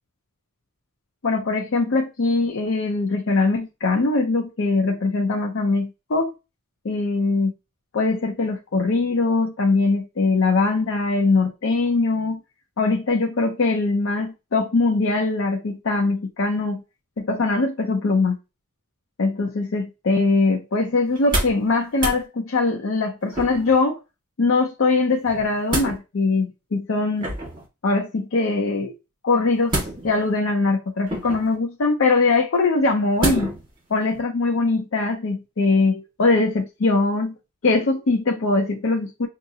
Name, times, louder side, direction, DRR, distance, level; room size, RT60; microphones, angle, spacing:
voice 1, 1.2-6.3 6.8-7.5 7.9-12.4 12.8-16.8 17.2-18.4 19.2-24.0 24.4-27.3 27.8-28.9 29.2-29.8 30.0-33.5 33.9-37.4 37.6-39.3, left 3 dB, 60° left, 0.5 m, -21 dB
sound 1, 21.1-21.7 21.9-22.2 23.3-23.8 25.3-26.0 27.2-27.7 29.7-30.3 31.1-31.6 33.2-33.7 34.1-34.2, right 1 dB, 20° right, 1.5 m, -27 dB
5.5 x 2.5 x 2.7 m
head